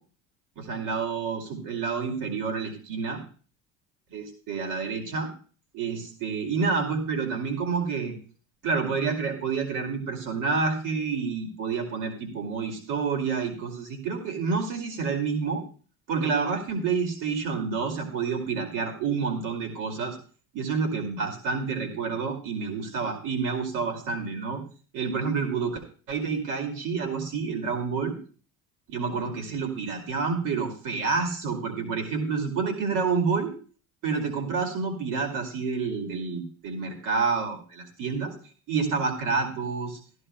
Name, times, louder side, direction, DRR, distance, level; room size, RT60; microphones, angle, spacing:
voice 1, 0.6-3.2 4.1-5.3 5.7-8.1 8.6-15.6 16.1-20.2 20.5-24.6 24.9-25.8 26.1-28.2 28.9-33.5 34.0-38.3 38.7-40.0, right 5 dB, 70° right, 3 dB, 2.5 m, -28 dB
14.5 x 12.0 x 2.2 m, 0.40 s
supercardioid pair, 100°, 33 cm